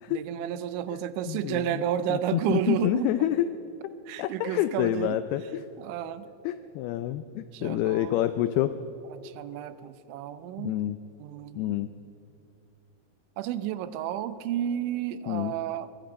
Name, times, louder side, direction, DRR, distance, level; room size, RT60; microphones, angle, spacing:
voice 1, 0.1-3.1 4.1-5.2 5.8-6.3 7.5-8.2 9.1-10.8 11.2-11.8 13.4-15.9, right 10 dB, 85° right, 13 dB, 3.2 m, -31 dB
voice 2, 1.3-1.8 2.1-3.5 4.2-5.6 6.4-8.7 10.6-11.0 11.6-11.9 15.3-15.5, left 13 dB, 90° left, 11 dB, 2.2 m, -28 dB
23.5 x 21.5 x 5.2 m, 2.9 s
omnidirectional pair, 5.2 m